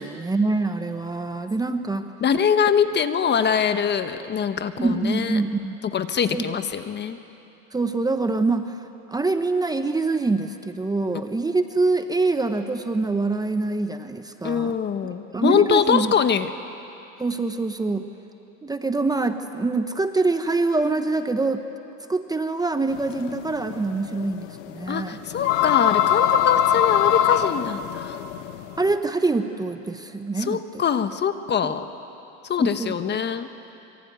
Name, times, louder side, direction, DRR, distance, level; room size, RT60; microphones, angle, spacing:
voice 1, 0.0-2.1 4.8-5.8 6.3-6.5 7.7-14.7 15.3-16.1 17.2-18.1 18.6-21.6 22.1-25.2 28.8-30.8 31.6-31.7 32.6-32.9, right 3 dB, 10° right, 8 dB, 1.0 m, -25 dB
voice 2, 2.2-5.4 5.9-7.2 14.4-16.5 24.9-28.2 30.4-31.9 32.5-33.5, left 7 dB, 30° left, 10 dB, 1.2 m, -23 dB
sound 1, 22.9-29.0, left 10 dB, 75° left, 1.5 m, -22 dB
26.0 x 24.0 x 9.5 m, 2.9 s
supercardioid pair, 120°, 37 cm